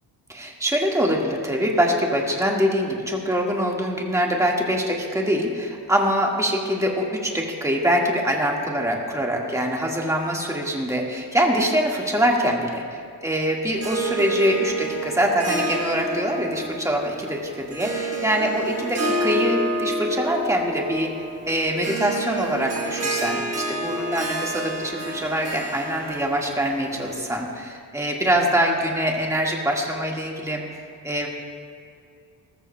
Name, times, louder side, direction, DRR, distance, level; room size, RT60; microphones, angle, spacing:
voice 1, 0.3-21.1 21.5-30.6 31.0-31.3, equal, 5° right, -1 dB, 1.7 m, -24 dB
Harp, 13.7-27.5, right 1 dB, 35° right, 1.3 m, -29 dB
19.0 x 14.0 x 2.3 m, 2.3 s
wide cardioid pair, 115°, 41 cm